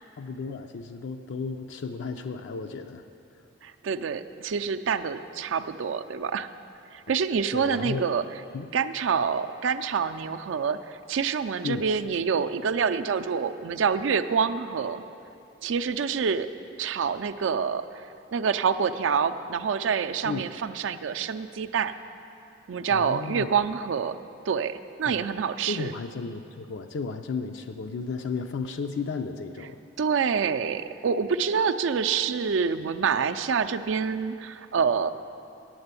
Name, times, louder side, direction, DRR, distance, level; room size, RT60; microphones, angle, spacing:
voice 1, 0.2-3.0 7.5-8.1 8.5-8.7 11.6-11.9 20.2-20.5 22.9-23.5 25.0-25.3 25.6-29.8, left 4 dB, 70° left, 5 dB, 0.4 m, -33 dB
voice 2, 3.6-6.5 6.9-8.2 8.7-15.0 15.6-16.5 16.8-17.8 18.3-21.9 22.7-24.2 24.5-25.9 30.0-35.1, right 6 dB, 90° right, 9 dB, 0.4 m, -27 dB
8.7 x 7.8 x 8.2 m, 2.7 s
head